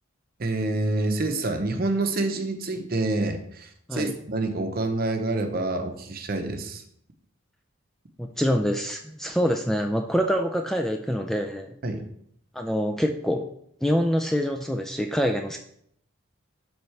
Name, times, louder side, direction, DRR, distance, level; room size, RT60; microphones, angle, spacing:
voice 1, 0.4-6.8 11.8-12.0, right 2 dB, 45° right, 6 dB, 0.8 m, -27 dB
voice 2, 8.2-11.7 12.5-13.5 13.8-15.6, equal, ahead, 3 dB, 0.3 m, -25 dB
11.5 x 4.0 x 3.2 m, 0.69 s
head